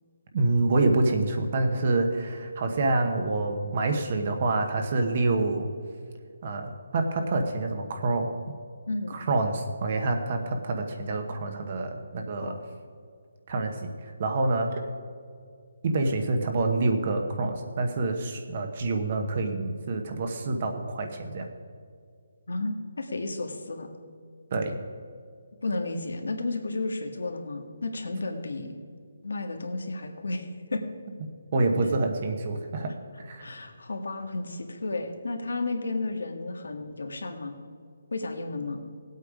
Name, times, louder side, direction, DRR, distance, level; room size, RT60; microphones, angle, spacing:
voice 1, 0.3-5.7 6.4-8.3 9.1-12.6 13.5-13.9 14.2-14.8 15.8-21.5 24.5-24.8 31.5-32.9 33.2-33.4, right 2 dB, 35° right, 4 dB, 1.0 m, -27 dB
voice 2, 8.9-9.2 12.4-12.6 22.5-23.9 25.6-28.7 29.2-30.8 33.4-37.6 38.1-38.8, left 2 dB, 85° left, 5 dB, 1.7 m, -32 dB
17.5 x 8.3 x 5.0 m, 2.2 s
hypercardioid pair, 175°, 0 cm